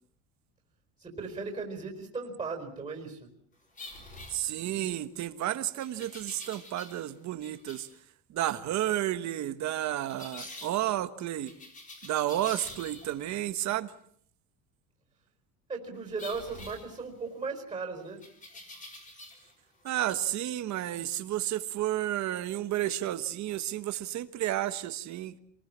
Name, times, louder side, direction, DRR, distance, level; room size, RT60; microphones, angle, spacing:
voice 1, 1.0-3.3 15.7-18.2, right 4 dB, 10° right, 4.3 m, -37 dB
sound 1, 3.7-5.0 5.8-7.1 7.4-7.9 10.1-10.8 11.5-13.3 16.2-17.5 18.2-19.5 19.8-20.1, left 2 dB, 20° left, 4.2 m, -47 dB
voice 2, 4.3-7.9 8.3-11.5 12.0-13.9 19.8-25.4, right 13 dB, 45° right, 1.4 m, -31 dB
27.0 x 19.5 x 7.4 m
cardioid pair, 170°, 41 cm